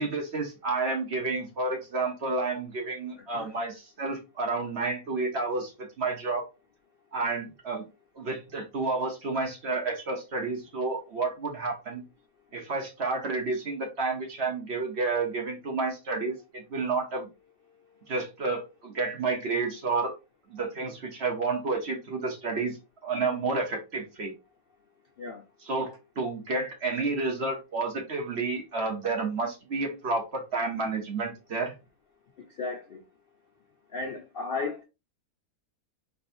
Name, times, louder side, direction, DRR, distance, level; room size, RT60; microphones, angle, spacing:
voice 1, 0.0-6.5 7.1-7.9 8.1-12.0 12.5-17.3 18.1-20.1 20.5-22.8 23.0-24.3 25.6-31.7, right 3 dB, 45° right, 1.2 m, -30 dB
voice 2, 32.5-33.0 33.9-34.8, left 3 dB, 55° left, 0.6 m, -34 dB
4.2 x 3.4 x 2.6 m
omnidirectional pair, 1.6 m